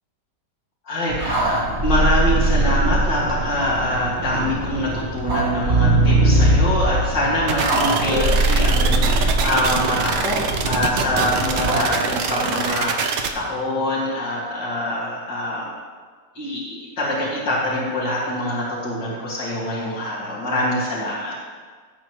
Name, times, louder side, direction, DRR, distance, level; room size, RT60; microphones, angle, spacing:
voice 1, 0.9-15.7 16.3-21.3, left 1 dB, 80° left, -9 dB, 2.9 m, -24 dB
sound 1, 1.1-11.8, right 1 dB, 40° right, 1.4 m, -21 dB
sound 2, 7.5-13.3, right 6 dB, 75° right, 1.5 m, -24 dB
17.0 x 7.8 x 3.1 m, 1.6 s
omnidirectional pair, 1.9 m